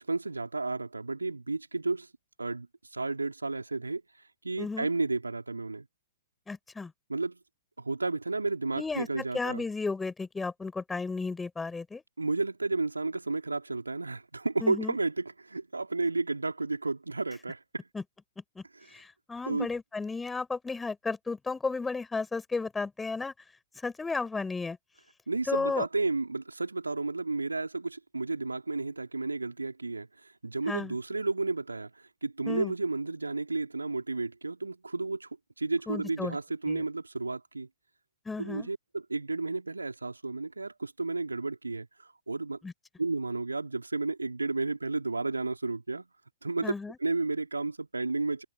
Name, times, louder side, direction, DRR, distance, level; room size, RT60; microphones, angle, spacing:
voice 1, 0.0-2.1 2.4-4.0 4.4-5.9 7.1-7.4 7.8-9.6 12.2-17.9 18.7-18.9 19.4-19.7 25.3-35.3 35.6-37.7 38.4-42.6 43.0-46.1 46.4-46.7 47.0-48.4, right 3 dB, 80° right, 4.2 m, -32 dB
voice 2, 4.6-4.9 6.5-6.9 8.7-12.0 14.6-15.0 17.9-18.0 18.6-18.7 18.9-23.3 23.8-24.8 25.5-25.8 30.7-30.9 32.5-32.7 35.9-36.4 36.7-36.8 38.3-38.7 42.6-42.7 46.6-47.0, left 4 dB, 10° left, 5.4 m, -33 dB
figure-of-eight pair, 110°, 0 cm